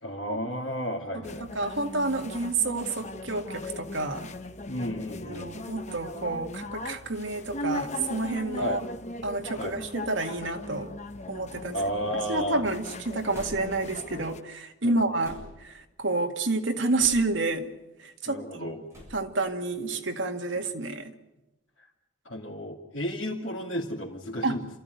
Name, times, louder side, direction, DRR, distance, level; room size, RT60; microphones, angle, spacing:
voice 1, 0.0-1.5 4.6-5.5 8.6-8.8 9.6-9.8 11.7-12.6 14.8-15.0 18.3-18.8 22.2-24.7, equal, 70° left, 2.8 m, -33 dB
voice 2, 1.1-4.3 5.3-8.8 9.2-10.9 11.3-11.8 12.3-17.7 18.0-18.8 19.1-21.1 24.4-24.6, right 2 dB, 70° right, 1.9 m, -29 dB
sound 1, 1.2-14.4, left 2 dB, 35° left, 1.0 m, -39 dB
sound 2, 11.2-11.7 13.3-13.9 15.2-15.7 17.0-17.5 18.9-19.3, left 1 dB, 15° right, 7.2 m, -47 dB
29.0 x 14.5 x 9.4 m
head